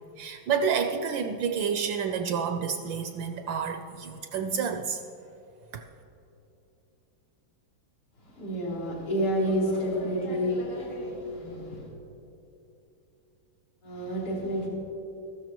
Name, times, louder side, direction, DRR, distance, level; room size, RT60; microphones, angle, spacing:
voice 1, 0.2-5.0 5.7-5.8, right 6 dB, 75° right, 6 dB, 1.1 m, -29 dB
voice 2, 8.2-11.9 13.8-14.7, equal, 80° left, -8 dB, 4.1 m, -30 dB
14.5 x 13.0 x 3.0 m, 2.9 s
omnidirectional pair, 2.4 m